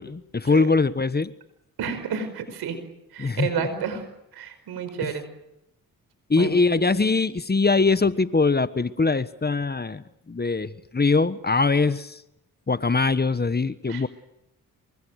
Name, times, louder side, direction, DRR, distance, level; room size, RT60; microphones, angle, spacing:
voice 1, 0.0-1.3 3.2-3.7 5.0-5.1 6.3-12.2 12.7-14.1, left 4 dB, 25° left, 1.3 m, -22 dB
voice 2, 1.8-2.8 3.1-4.1 4.3-5.3 6.4-6.5 13.9-14.0, right 6 dB, 85° right, 5.1 m, -30 dB
28.0 x 24.0 x 6.5 m
supercardioid pair, 55°, 37 cm